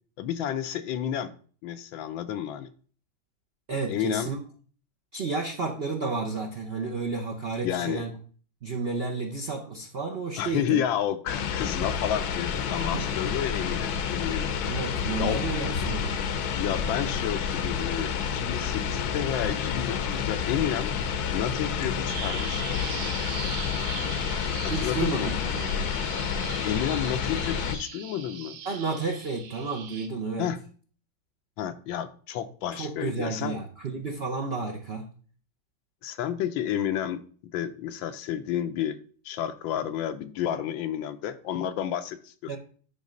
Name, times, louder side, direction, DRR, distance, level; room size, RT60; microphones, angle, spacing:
voice 1, 0.2-1.3 1.6-2.7 3.9-4.3 7.6-8.0 10.4-14.5 15.2-15.4 16.6-20.9 21.3-22.8 24.6-25.4 26.6-28.6 30.4-30.6 31.6-33.5 36.0-39.0 39.2-42.6, left 10 dB, 85° left, 10 dB, 1.4 m, -31 dB
voice 2, 3.7-4.4 5.1-8.1 8.6-10.8 12.8-13.1 14.6-16.2 24.7-25.9 28.7-30.5 32.7-35.1 42.5-42.6, right 4 dB, 55° right, 1 dB, 0.7 m, -31 dB
sound 1, 11.3-27.7, left 7 dB, 65° left, 1.1 m, -29 dB
Bird vocalization bird call bird song, 22.1-30.1, right 7 dB, 85° right, 1.7 m, -40 dB
9.5 x 3.3 x 5.1 m, 0.43 s
omnidirectional pair, 2.1 m